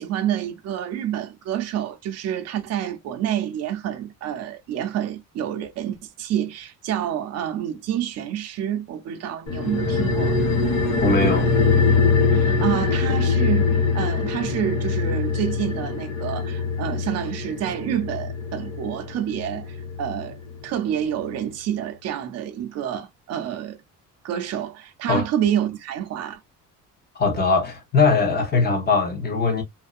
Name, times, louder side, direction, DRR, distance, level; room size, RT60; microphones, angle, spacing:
voice 1, 0.0-10.4 12.3-20.4 20.6-23.8 24.2-26.4, right 10 dB, 50° right, 0.5 m, -28 dB
sound 1, 9.5-20.3 20.6-20.7, left 4 dB, 65° left, 1.1 m, -23 dB
voice 2, 11.0-11.5 25.1-25.2 27.1-29.6, left 4 dB, 30° left, 0.9 m, -20 dB
2.5 x 2.1 x 2.3 m
cardioid pair, 145°, 32 cm